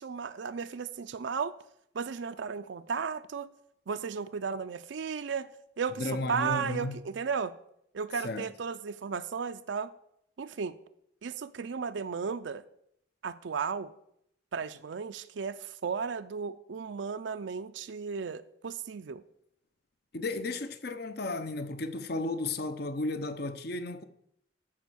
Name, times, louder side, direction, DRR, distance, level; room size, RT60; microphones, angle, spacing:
voice 1, 0.0-1.5 1.9-3.5 3.9-5.5 5.8-7.5 7.9-9.9 10.4-10.8 11.2-12.6 13.2-13.9 14.5-19.2, right 6 dB, 70° right, 0.4 m, -34 dB
voice 2, 6.0-7.0 8.2-8.5 20.1-24.0, left 2 dB, 55° left, 0.7 m, -34 dB
13.5 x 5.2 x 6.3 m
head